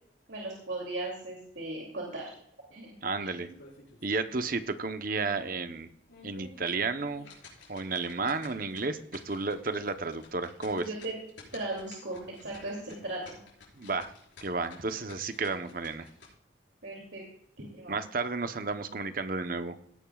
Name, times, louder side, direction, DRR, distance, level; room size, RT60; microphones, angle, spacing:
voice 1, 0.3-2.3 2.7-2.9 3.2-3.3 10.7-11.1 11.5-13.4 16.8-17.2 17.6-18.0, right 2 dB, 75° right, -2 dB, 2.7 m, -37 dB
voice 2, 3.0-3.5 4.0-5.9 6.2-7.3 7.7-10.9 13.8-14.1 14.4-16.1 17.9-19.8, right 3 dB, 45° right, 9 dB, 0.9 m, -32 dB
sound 1, 3.5-4.2 4.6-4.7 5.2-5.3 5.9-16.3, left 4 dB, 85° left, 5.1 m, -53 dB
17.5 x 11.0 x 2.4 m, 0.65 s
head